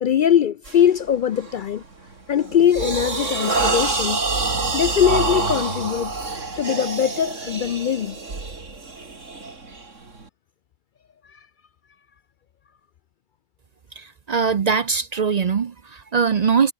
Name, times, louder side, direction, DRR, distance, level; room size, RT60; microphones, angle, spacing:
voice 1, 0.0-1.8 2.3-4.2 4.7-6.1 6.6-8.2, left 9 dB, 65° left, 0.5 m, -21 dB
sound 1, 0.6-0.9 1.4-1.7 2.1-10.2, right 3 dB, 70° right, 3.5 m, -26 dB
voice 2, 14.0-16.7, right 6 dB, 45° right, 0.5 m, -21 dB
omnidirectional pair, 1.3 m